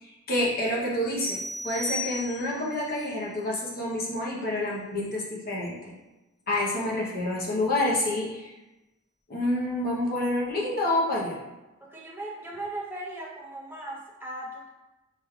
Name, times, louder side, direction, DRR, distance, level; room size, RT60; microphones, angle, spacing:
voice 1, 0.0-5.9 6.5-8.5 9.3-11.4, left 1 dB, 45° left, -4 dB, 0.9 m, -28 dB
sound 1, 1.2-2.7, left 1 dB, 10° left, 1.0 m, -34 dB
voice 2, 11.8-14.7, right 1 dB, 10° right, -4 dB, 0.6 m, -38 dB
4.9 x 3.2 x 2.4 m, 1.1 s
head